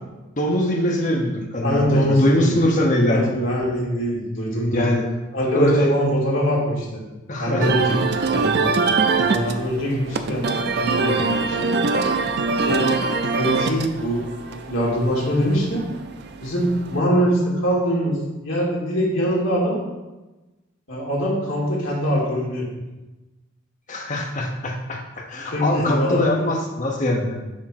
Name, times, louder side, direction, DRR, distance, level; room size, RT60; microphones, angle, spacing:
voice 1, 0.4-3.2 4.7-5.1 5.5-5.9 7.3-7.9 23.9-27.4, left 1 dB, 35° left, 0 dB, 0.9 m, -22 dB
voice 2, 1.6-2.6 3.1-4.9 5.3-7.0 7.4-8.0 8.3-8.7 9.2-11.7 12.6-12.9 13.3-14.2 14.7-15.8 16.4-18.2 18.4-19.8 20.9-22.7 25.5-26.5, equal, 65° left, -5 dB, 2.1 m, -23 dB
sound 1, 7.6-17.0, right 4 dB, 50° right, 0.4 m, -23 dB
6.5 x 3.6 x 5.8 m, 1.1 s
head